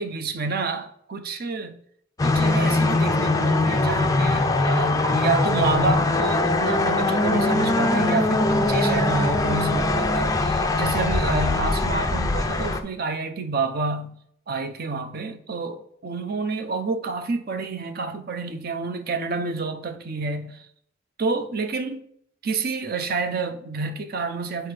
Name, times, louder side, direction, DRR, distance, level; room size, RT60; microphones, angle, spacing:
voice 1, 0.0-1.7 2.2-14.1 14.5-20.7 21.2-22.0 22.4-24.7, right 4 dB, 45° right, 0.5 m, -29 dB
sound 1, 2.2-12.8, left 2 dB, 15° left, 0.4 m, -21 dB
7.7 x 4.4 x 3.3 m
head